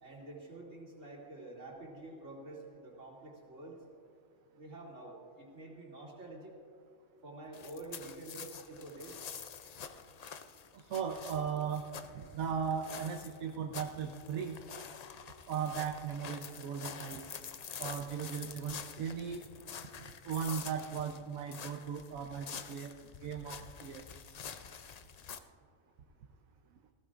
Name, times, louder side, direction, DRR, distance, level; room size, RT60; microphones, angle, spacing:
voice 1, 0.0-3.8 4.5-6.6 7.2-9.2, right 2 dB, 65° right, -4 dB, 3.0 m, -48 dB
sound 1, 7.5-25.4, left 7 dB, 90° left, 0.3 m, -47 dB
voice 2, 10.7-11.8 12.1-14.6 15.5-17.2 17.8-19.5 20.2-22.9 23.2-24.0, right 7 dB, 85° right, 4 dB, 1.2 m, -37 dB
19.5 x 15.5 x 2.5 m, 2.3 s
omnidirectional pair, 1.4 m